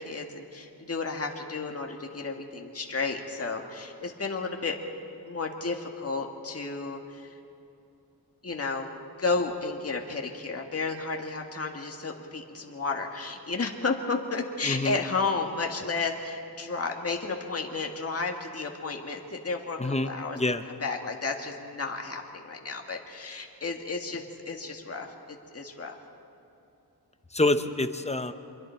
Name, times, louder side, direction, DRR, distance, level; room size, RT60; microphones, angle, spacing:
voice 1, 0.0-4.8 5.3-7.3 8.4-20.4 20.8-26.0, left 4 dB, 35° left, 2 dB, 1.7 m, -32 dB
voice 2, 14.6-15.0 19.8-20.6 27.3-28.3, left 2 dB, 15° left, 9 dB, 0.9 m, -27 dB
26.5 x 22.5 x 4.5 m, 2.7 s
wide cardioid pair, 90°, 39 cm